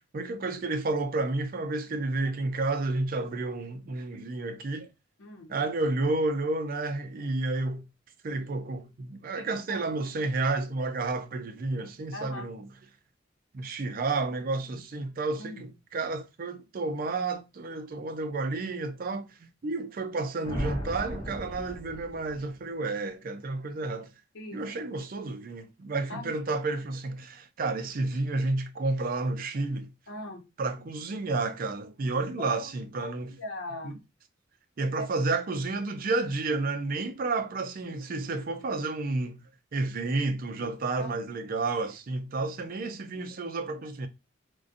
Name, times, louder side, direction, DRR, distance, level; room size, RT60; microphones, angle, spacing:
voice 1, 0.1-4.9 5.5-7.8 8.2-12.7 13.5-24.1 24.5-29.9 30.6-33.4 33.8-33.9 34.8-39.4 39.7-44.1, right 3 dB, 50° right, 0.4 m, -31 dB
voice 2, 5.2-5.5 9.3-9.8 12.1-12.5 15.4-15.6 24.3-24.6 26.1-26.4 30.1-30.4 32.4-34.0 35.0-35.1 41.0-41.4, left 1 dB, 85° left, 0.8 m, -40 dB
sound 1, 20.4-22.4, equal, 30° left, 1.1 m, -36 dB
2.5 x 2.2 x 2.4 m
head